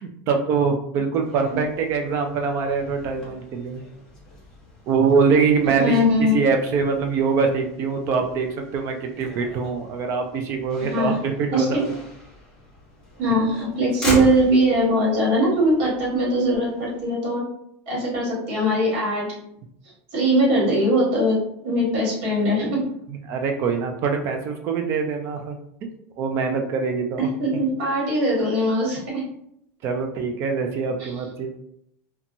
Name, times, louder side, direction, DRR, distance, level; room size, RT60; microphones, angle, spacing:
voice 1, 0.0-3.8 4.9-6.0 6.3-11.9 23.3-25.6 26.2-27.3 29.8-31.5, right 5 dB, 35° right, 4 dB, 0.4 m, -23 dB
Motor vehicle (road), 1.2-17.1, left 1 dB, 10° left, 0.8 m, -38 dB
voice 2, 5.8-6.4 10.8-11.2 11.5-11.7 13.2-17.4 17.9-19.3 20.1-21.3 21.6-22.8 27.4-29.3 31.0-31.1, equal, 55° right, -5 dB, 1.4 m, -21 dB
2.8 x 2.2 x 2.6 m, 0.73 s
supercardioid pair, 160°, 8 cm